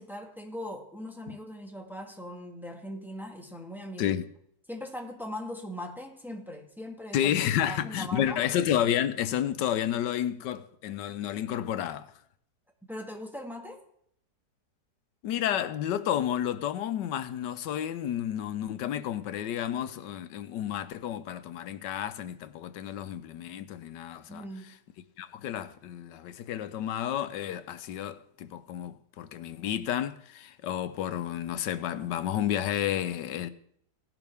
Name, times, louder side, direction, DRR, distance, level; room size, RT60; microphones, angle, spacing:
voice 1, 0.0-4.1 4.7-7.3 7.7-8.4 12.9-13.8 24.3-24.8, equal, ahead, 1.7 m, -40 dB
voice 2, 7.1-12.1 15.2-24.4 25.2-33.5, left 10 dB, 90° left, 1.4 m, -31 dB
18.0 x 11.0 x 3.5 m
omnidirectional pair, 1.8 m